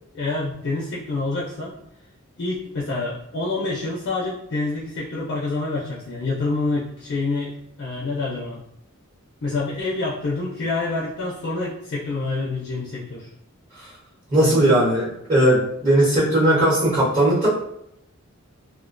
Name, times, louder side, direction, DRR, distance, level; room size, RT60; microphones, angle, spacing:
voice 1, 0.1-1.8 2.4-7.5 7.8-8.6 9.4-13.3 14.4-14.7, left 3 dB, 55° left, -4 dB, 0.4 m, -27 dB
voice 2, 14.3-17.5, right 1 dB, 35° right, -9 dB, 1.0 m, -18 dB
2.3 x 2.2 x 2.4 m, 0.76 s
head